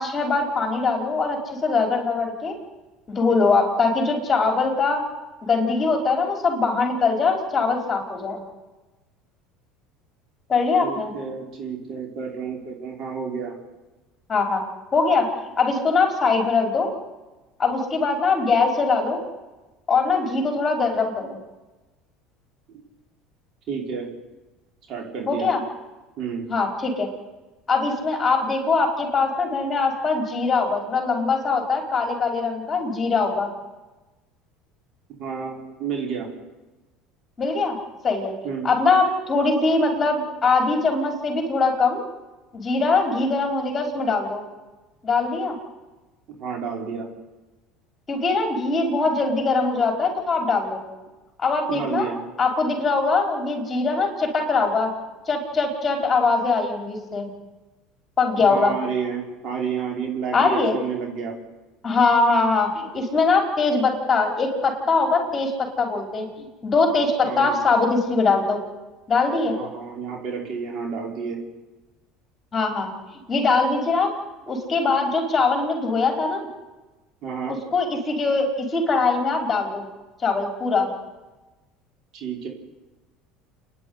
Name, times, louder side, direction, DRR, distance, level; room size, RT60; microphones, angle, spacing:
voice 1, 0.0-2.5 3.1-5.0 5.4-8.4 10.5-11.1 14.3-14.6 14.9-15.3 15.6-16.9 17.6-19.2 19.9-21.4 25.3-25.6 26.5-27.1 27.7-33.5 37.4-37.8 38.0-38.3 38.6-42.0 42.5-44.4 45.0-45.5 48.1-50.8 51.4-52.1 52.4-54.9 55.3-57.3 58.2-58.7 60.3-60.7 61.8-68.6 69.1-69.5 72.5-72.9 73.3-74.1 74.5-76.5 77.5-79.8 80.2-80.9, left 4 dB, 25° left, 3 dB, 5.1 m, -22 dB
voice 2, 10.8-13.5 22.7-22.8 23.7-24.1 24.9-25.5 26.2-26.5 35.2-36.3 38.4-38.7 46.4-47.1 51.7-52.2 58.4-61.3 67.2-67.6 69.4-71.4 77.2-77.6 82.1-82.5, right 6 dB, 50° right, 1 dB, 5.4 m, -30 dB
28.0 x 11.0 x 9.9 m, 1.1 s
supercardioid pair, 105°, 0 cm